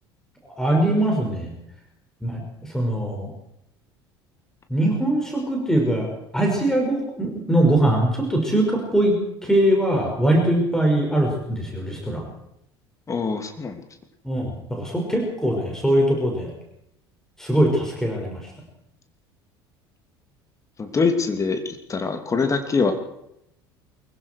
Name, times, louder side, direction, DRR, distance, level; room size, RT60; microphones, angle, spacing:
voice 1, 0.4-1.5 2.2-3.3 4.7-6.1 6.3-12.3 14.2-16.5 17.4-18.5, right 1 dB, 5° left, 0 dB, 6.3 m, -22 dB
voice 2, 13.1-13.8 20.8-22.9, left 4 dB, 25° left, 5 dB, 2.9 m, -23 dB
24.5 x 23.0 x 4.9 m, 0.80 s
figure-of-eight pair, 65°, 13 cm